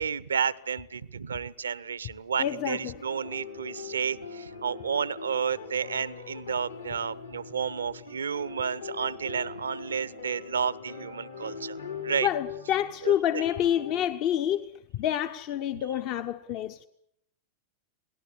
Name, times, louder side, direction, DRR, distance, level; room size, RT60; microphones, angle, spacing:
voice 1, 0.0-11.8 12.0-12.3 13.0-13.4, right 6 dB, 70° right, 0.9 m, -31 dB
sound 1, 2.3-14.1, left 6 dB, 75° left, 4.2 m, -42 dB
voice 2, 2.4-2.9 12.2-14.7 14.9-16.9, left 11 dB, 40° left, 1.0 m, -28 dB
27.5 x 19.0 x 8.5 m
figure-of-eight pair, 90°, 0 cm